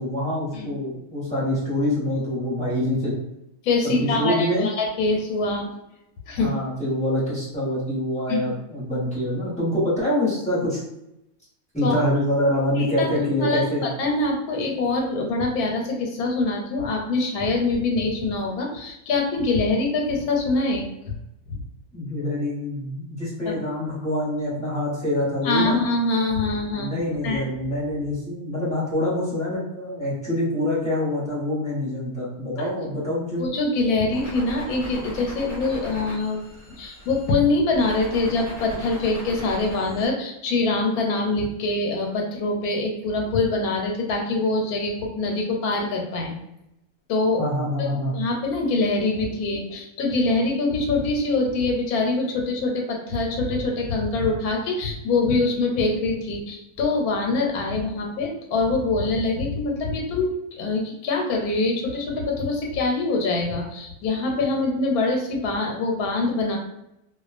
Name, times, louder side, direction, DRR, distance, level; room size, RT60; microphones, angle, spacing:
voice 1, 0.0-3.1 3.8-4.7 6.4-10.8 11.7-13.8 21.9-25.8 26.7-33.4 47.4-48.1, left 1 dB, 5° left, -9 dB, 0.8 m, -25 dB
voice 2, 3.6-5.7 6.3-6.5 8.3-8.5 11.8-12.0 12.8-20.8 23.5-23.6 25.4-26.9 27.2-27.4 33.4-36.4 36.8-46.3 47.1-47.4 47.8-47.9 48.1-66.6, left 3 dB, 90° left, 1 dB, 1.1 m, -24 dB
sound 1, 34.1-37.3 37.7-40.0, equal, 35° left, 0.7 m, -37 dB
2.4 x 2.3 x 2.4 m, 0.85 s
omnidirectional pair, 1.5 m